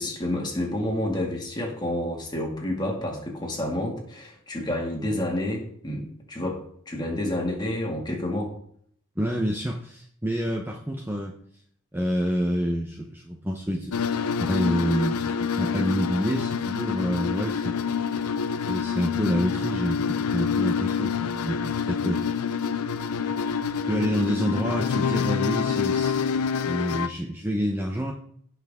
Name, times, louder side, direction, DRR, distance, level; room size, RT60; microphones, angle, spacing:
voice 1, 0.0-8.5, left 1 dB, 20° left, 0 dB, 2.1 m, -29 dB
voice 2, 9.2-11.4 11.9-14.0 14.4-17.7 18.7-22.2 23.8-26.3 26.6-28.1, equal, 10° right, 0 dB, 0.8 m, -28 dB
sound 1, 13.9-27.1, left 6 dB, 90° left, 0.6 m, -27 dB
16.5 x 5.9 x 3.6 m, 0.64 s
head